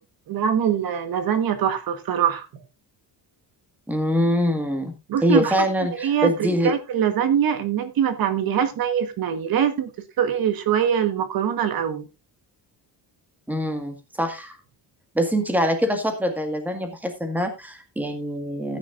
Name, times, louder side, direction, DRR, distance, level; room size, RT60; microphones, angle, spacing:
voice 1, 0.3-2.5 5.1-5.5 5.9-9.9 10.2-12.1, right 8 dB, 55° right, 10 dB, 1.4 m, -23 dB
voice 2, 3.9-4.9 5.2-6.7 13.5-14.6 15.1-18.8, equal, 5° right, 6 dB, 1.8 m, -24 dB
14.5 x 9.5 x 2.5 m, 0.25 s
cardioid pair, 160°, 42 cm